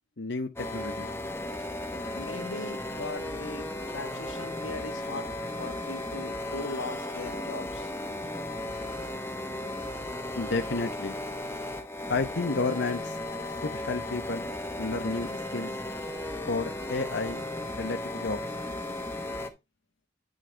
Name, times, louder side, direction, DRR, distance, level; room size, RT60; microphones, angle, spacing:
voice 1, 0.2-1.1 10.4-11.2 12.1-13.2 13.6-14.5 14.8-15.8 16.5-17.4 17.8-18.4, left 3 dB, 60° left, 0.9 m, -31 dB
sound 1, 0.6-19.5, left 1 dB, 15° left, 1.0 m, -35 dB
voice 2, 2.1-5.3 5.6-7.9, left 3 dB, 90° left, 1.3 m, -39 dB
9.3 x 6.4 x 3.4 m
head